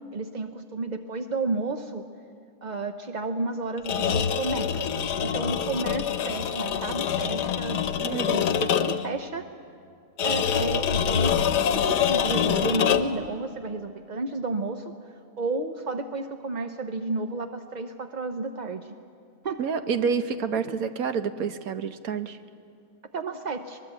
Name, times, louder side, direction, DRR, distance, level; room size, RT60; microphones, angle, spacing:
voice 1, 0.1-2.1 2.6-4.9 5.2-9.5 10.2-11.3 11.7-18.9 19.4-19.6 20.6-20.7 23.1-23.8, right 3 dB, 50° right, 6 dB, 0.5 m, -32 dB
sound 1, 3.8-9.1 10.2-13.3, left 8 dB, 80° left, 1.4 m, -25 dB
voice 2, 8.0-8.5 19.6-22.4, right 6 dB, 65° right, 9 dB, 1.3 m, -28 dB
22.5 x 20.5 x 8.1 m, 2.3 s
omnidirectional pair, 1.8 m